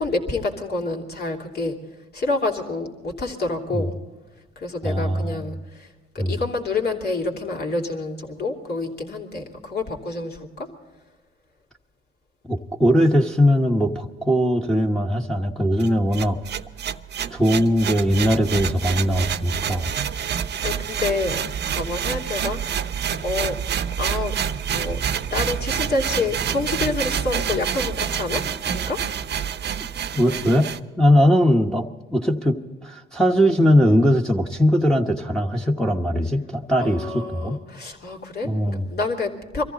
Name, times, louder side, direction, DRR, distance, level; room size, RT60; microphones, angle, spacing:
voice 1, 0.0-1.8 2.1-4.0 4.6-5.9 6.3-10.7 20.1-22.6 23.2-23.5 24.0-24.3 24.7-25.0 25.3-29.0 36.8-39.6, left 3 dB, 55° left, 1 dB, 2.9 m, -28 dB
voice 2, 4.8-5.4 6.2-6.3 12.5-16.4 17.3-19.9 30.1-37.6 38.4-38.9, equal, 5° left, -1 dB, 1.2 m, -20 dB
sound 1, 15.8-30.8, right 8 dB, 60° right, 0.8 m, -27 dB
24.0 x 14.5 x 4.1 m, 1.2 s
cardioid pair, 90°, 20 cm